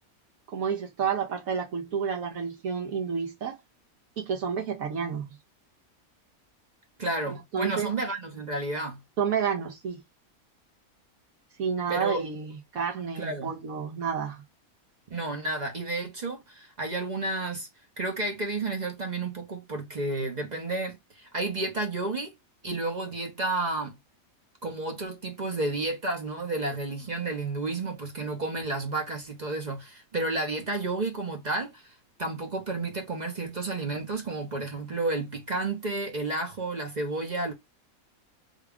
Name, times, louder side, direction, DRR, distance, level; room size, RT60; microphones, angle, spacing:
voice 1, 0.5-3.6 4.2-5.3 7.3-7.9 9.2-10.0 11.6-14.4, right 6 dB, 75° right, 1.3 m, -30 dB
voice 2, 7.0-9.0 11.9-12.2 13.2-13.5 15.1-17.7 18.0-22.3 22.6-24.0 24.6-37.5, right 2 dB, 40° right, 0.7 m, -31 dB
3.5 x 2.3 x 3.5 m
omnidirectional pair, 1.5 m